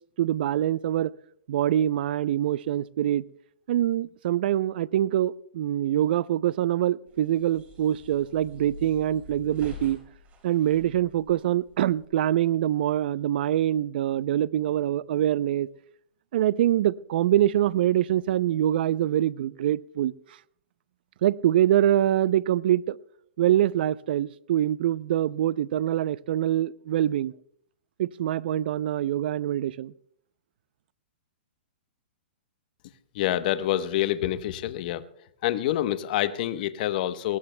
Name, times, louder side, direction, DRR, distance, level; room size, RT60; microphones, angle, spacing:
voice 1, 0.2-1.1 1.5-3.2 3.7-10.0 10.4-15.7 16.3-20.1 21.2-23.0 23.4-27.3 28.0-29.9, right 12 dB, 60° right, 0.5 m, -24 dB
sound 1, 7.1-12.1, left 1 dB, 25° right, 5.1 m, -45 dB
voice 2, 33.1-35.0 35.4-37.4, left 13 dB, 50° left, 1.0 m, -27 dB
23.5 x 19.0 x 2.2 m
hypercardioid pair, 140°, 6 cm